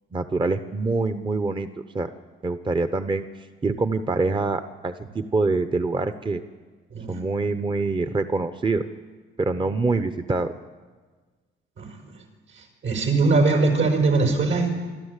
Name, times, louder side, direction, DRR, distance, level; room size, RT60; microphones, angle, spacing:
voice 1, 0.1-1.7 1.9-2.1 2.4-3.3 3.6-6.4 7.1-8.8 9.4-10.5, right 3 dB, 25° right, 10 dB, 0.9 m, -25 dB
voice 2, 11.8-12.1 12.6-14.7, right 3 dB, 75° right, 2 dB, 5.6 m, -21 dB
26.0 x 12.5 x 8.3 m, 1.4 s
cardioid pair, 90°, 20 cm